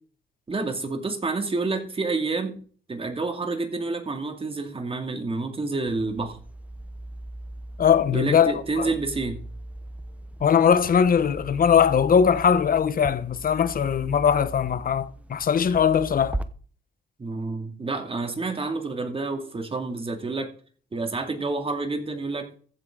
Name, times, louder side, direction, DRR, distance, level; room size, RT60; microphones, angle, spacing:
voice 1, 0.5-2.6 2.9-6.4 8.1-9.4 17.2-20.5 20.9-22.5, right 3 dB, 30° right, 2.5 m, -29 dB
sound 1, 5.8-16.4, right 1 dB, 5° right, 0.9 m, -39 dB
voice 2, 7.8-8.9 10.4-16.4, left 7 dB, 45° left, 1.1 m, -20 dB
15.0 x 8.2 x 3.9 m
cardioid pair, 90°, 20 cm